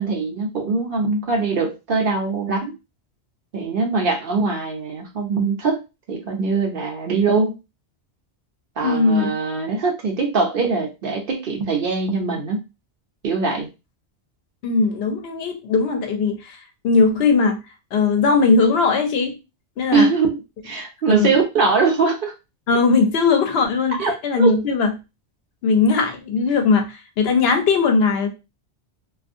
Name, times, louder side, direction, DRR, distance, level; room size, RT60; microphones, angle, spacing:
voice 1, 0.0-2.7 3.5-5.8 6.1-7.5 8.8-12.6 13.2-13.7 19.9-20.4 20.6-22.3 24.0-24.5, right 4 dB, 60° right, 3 dB, 0.7 m, -22 dB
voice 2, 8.8-9.3 14.6-17.6 17.9-19.3 19.8-20.1 21.1-21.4 22.7-24.9 25.6-28.3, left 4 dB, 70° left, 6 dB, 0.8 m, -19 dB
2.5 x 2.3 x 2.5 m, 0.27 s
omnidirectional pair, 1.1 m